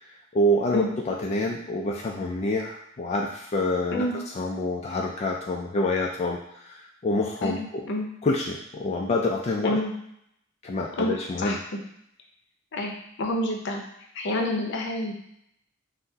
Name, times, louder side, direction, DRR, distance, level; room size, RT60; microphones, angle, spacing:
voice 1, 0.0-4.1 4.3-7.9 8.2-9.8 10.6-11.6, left 1 dB, 35° left, 0 dB, 0.3 m, -27 dB
voice 2, 7.4-8.1 9.6-9.9 11.0-11.1 11.4-11.6 12.7-12.9 13.2-13.8 14.1-15.1, left 1 dB, 65° left, 2 dB, 0.6 m, -28 dB
5.6 x 2.1 x 2.7 m, 0.75 s
head